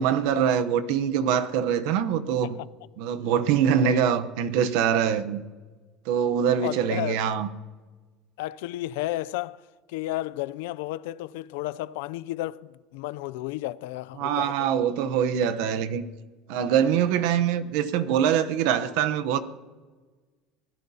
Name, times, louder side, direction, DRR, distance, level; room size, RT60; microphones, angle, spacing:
voice 1, 0.0-2.6 3.0-5.4 6.1-7.5 14.2-16.0 16.5-19.4, right 8 dB, 70° right, 0.8 m, -24 dB
voice 2, 3.4-4.0 6.6-7.2 8.4-14.7, left 16 dB, 85° left, 0.4 m, -33 dB
25.0 x 16.0 x 2.8 m
cardioid pair, 155°, 0 cm